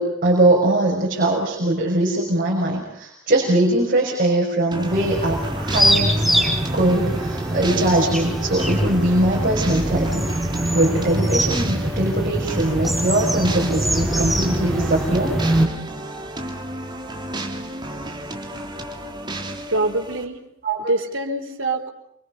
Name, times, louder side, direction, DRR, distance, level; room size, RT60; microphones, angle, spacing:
voice 1, 0.0-6.3 6.7-10.3 10.7-15.4 20.6-20.8, right 1 dB, 45° right, -2 dB, 5.9 m, -21 dB
sound 1, 4.7-20.2, right 1 dB, 20° right, 3.2 m, -33 dB
sound 2, 4.8-15.6, right 1 dB, ahead, 5.2 m, -23 dB
voice 2, 19.7-20.5 20.9-21.9, right 2 dB, 70° right, 3 dB, 4.6 m, -24 dB
28.5 x 25.5 x 5.4 m, 0.77 s
head